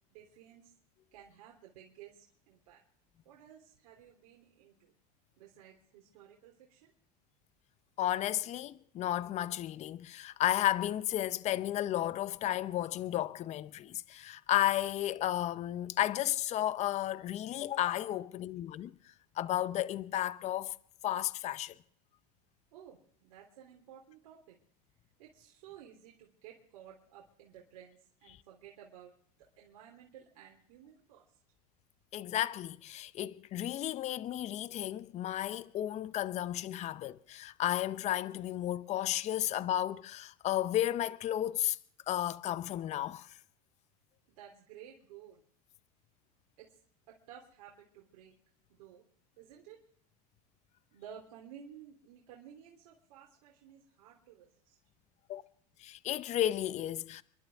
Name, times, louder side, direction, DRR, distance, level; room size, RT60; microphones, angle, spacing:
voice 1, 0.1-0.7 1.1-2.8 3.2-4.9 5.4-6.9 22.7-24.6 25.2-29.1 29.4-31.3 44.4-45.4 46.6-46.8 47.1-48.3 48.7-49.0 49.4-49.8 50.9-54.8, right 9 dB, 75° right, 3.2 m, -54 dB
voice 2, 8.0-18.9 19.4-20.8 21.0-21.7 32.1-41.8 42.1-43.3 55.3-55.4 55.8-57.2, left 13 dB, 35° left, 0.7 m, -33 dB
30.0 x 11.5 x 3.5 m
supercardioid pair, 120°, 20 cm